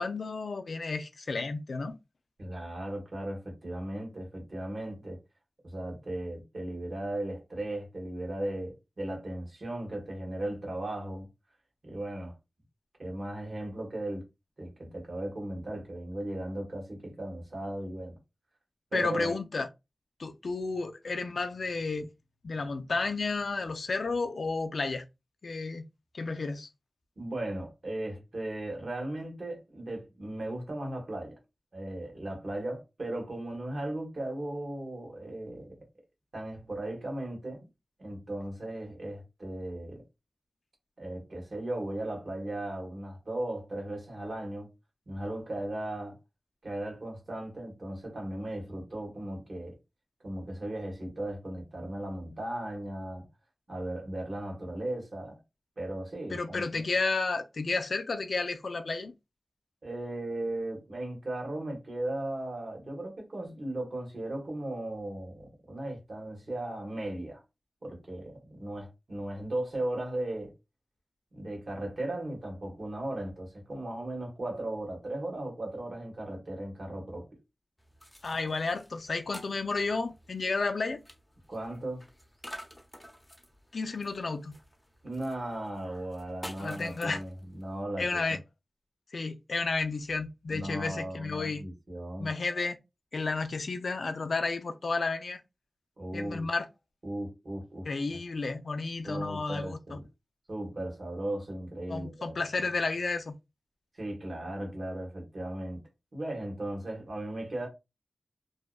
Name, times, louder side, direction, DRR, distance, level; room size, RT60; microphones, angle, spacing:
voice 1, 0.0-2.0 18.9-19.7 20.2-22.1 22.4-25.0 25.4-25.8 26.1-26.7 56.3-59.1 78.2-81.0 83.7-84.6 86.6-87.2 88.0-88.4 89.1-91.6 92.2-92.8 93.1-95.4 96.1-96.7 97.9-100.0 101.9-103.3, left 3 dB, 80° left, 0.3 m, -32 dB
voice 2, 2.4-5.2 5.6-11.3 11.8-12.3 13.0-14.3 14.6-18.2 18.9-19.3 27.2-31.4 31.7-35.8 36.3-37.7 38.0-40.0 41.0-44.7 45.1-46.2 46.6-49.8 50.2-53.3 53.7-55.4 55.8-56.8 59.8-67.4 67.8-70.5 71.3-77.3 81.5-82.0 85.0-88.4 90.5-92.3 96.0-96.5 97.0-98.2 99.0-100.0 100.5-102.4 103.9-105.8 106.1-107.7, right 1 dB, 65° right, 1.2 m, -37 dB
sound 1, 77.8-87.8, equal, 15° left, 0.8 m, -50 dB
2.6 x 2.2 x 2.3 m
cardioid pair, 45°, 0 cm